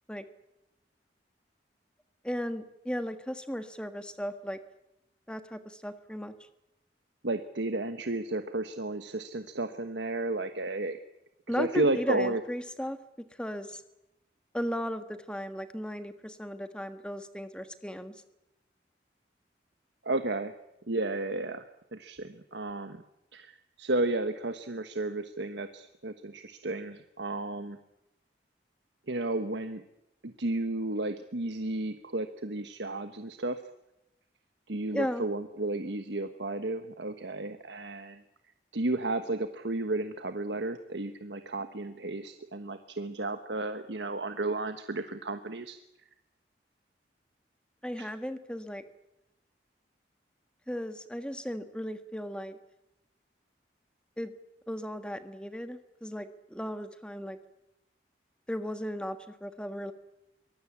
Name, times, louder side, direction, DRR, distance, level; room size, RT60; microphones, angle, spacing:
voice 1, 2.2-4.6 5.3-6.3 11.5-13.0 13.3-13.8 14.5-18.2 34.9-35.3 47.8-48.8 50.7-52.6 54.2-54.3 54.7-57.4 58.5-59.9, equal, 5° left, 9 dB, 1.4 m, -36 dB
voice 2, 7.2-11.0 11.5-12.4 20.0-20.5 20.9-23.0 23.3-27.8 29.1-29.8 30.2-33.6 34.7-38.2 38.7-45.8 48.0-48.1, right 2 dB, 80° right, 9 dB, 1.3 m, -33 dB
24.0 x 19.5 x 8.6 m, 0.87 s
head